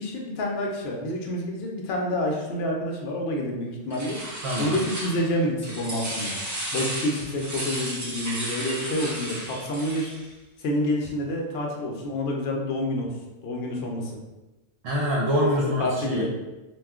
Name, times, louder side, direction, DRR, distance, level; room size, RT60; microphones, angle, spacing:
voice 1, 0.0-4.2 4.6-6.4 6.7-10.1 10.6-13.1 13.4-14.2 15.4-15.5 15.8-16.3, left 1 dB, 65° left, 0 dB, 0.7 m, -28 dB
sound 1, 3.9-5.4 5.6-10.2, right 1 dB, 25° right, 0.4 m, -34 dB
voice 2, 4.4-4.8 14.8-16.3, equal, 70° right, -3 dB, 0.9 m, -25 dB
2.3 x 2.2 x 3.5 m, 1.1 s
omnidirectional pair, 1.3 m